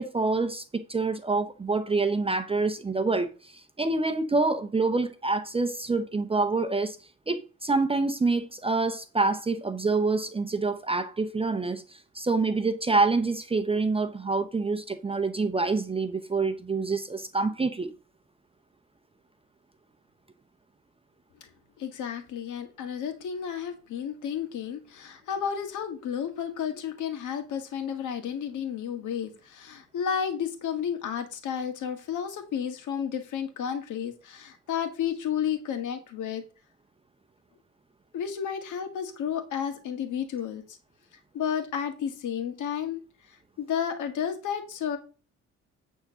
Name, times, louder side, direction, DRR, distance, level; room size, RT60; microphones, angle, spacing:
voice 1, 0.0-7.0 7.3-17.9, right 3 dB, 20° right, 0.7 m, -27 dB
voice 2, 21.8-36.4 38.1-40.8 41.3-43.0 43.3-45.0, left 8 dB, 80° left, 1.8 m, -32 dB
9.5 x 3.7 x 6.1 m
cardioid pair, 90°, 30 cm